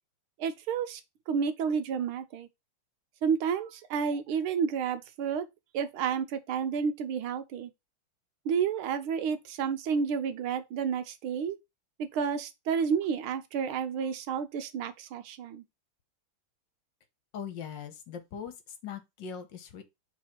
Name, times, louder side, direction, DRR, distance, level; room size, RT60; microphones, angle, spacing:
voice 1, 0.4-1.0 1.3-2.5 3.2-5.5 5.7-7.7 8.4-11.6 12.0-15.6, right 6 dB, 80° right, 1.7 m, -30 dB
voice 2, 17.3-18.5 18.8-19.8, left 7 dB, 65° left, 1.5 m, -40 dB
4.8 x 3.9 x 5.7 m
omnidirectional pair, 2.3 m